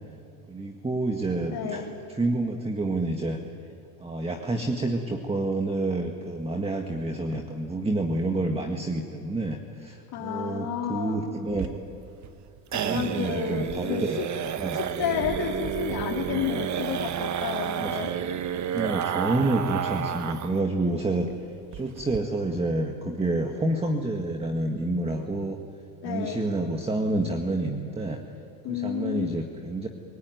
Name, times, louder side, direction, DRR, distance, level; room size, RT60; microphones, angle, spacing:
voice 1, 0.5-1.8 2.2-3.4 4.0-11.7 12.8-14.2 14.6-14.8 17.7-18.1 18.7-21.3 21.7-25.6 26.0-28.2 28.7-29.9, right 2 dB, 15° right, 4 dB, 1.8 m, -28 dB
voice 2, 1.5-1.9 10.1-11.2 12.7-14.2 14.7-18.1 18.8-18.9 26.0-26.4 28.6-29.4, left 8 dB, 55° left, -1 dB, 2.7 m, -31 dB
sound 1, 11.5-20.6 20.9-21.0 21.3-21.4 21.7-22.2, right 9 dB, 40° right, 1.2 m, -31 dB
29.5 x 19.0 x 9.4 m, 2.5 s
supercardioid pair, 110°, 44 cm